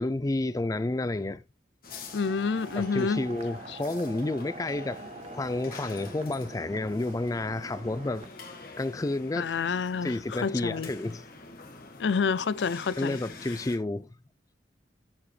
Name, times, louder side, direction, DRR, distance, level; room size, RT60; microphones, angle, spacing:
voice 1, 0.0-1.4 2.7-5.0 5.3-8.3 8.8-9.5 10.0-11.2 13.0-14.1, left 2 dB, 20° left, 0.4 m, -30 dB
sound 1, 1.8-13.8, left 3 dB, 55° left, 1.9 m, -46 dB
sound 2, 1.9-8.3, right 3 dB, 35° right, 0.7 m, -45 dB
voice 2, 2.1-3.2 3.7-3.8 9.4-10.9 12.0-13.2, left 5 dB, 75° left, 0.5 m, -28 dB
13.0 x 4.9 x 3.3 m
head